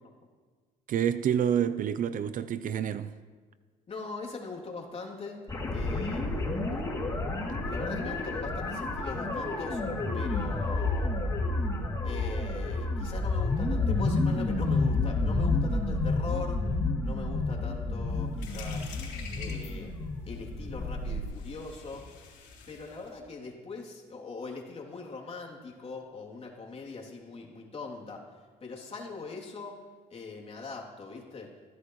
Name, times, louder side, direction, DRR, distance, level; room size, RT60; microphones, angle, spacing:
voice 1, 0.9-3.1 10.1-10.2, right 9 dB, 55° right, 0.6 m, -28 dB
voice 2, 3.9-6.7 7.5-9.8 10.1-11.2 12.0-16.7 17.0-19.0 19.4-19.9 20.3-22.1 22.7-31.5, left 3 dB, 35° left, 3.1 m, -41 dB
sound 1, 5.5-21.2, left 3 dB, 20° left, 2.8 m, -30 dB
sound 2, 18.1-23.2, left 5 dB, 85° left, 3.6 m, -47 dB
22.0 x 15.0 x 3.2 m
cardioid pair, 110°, 17 cm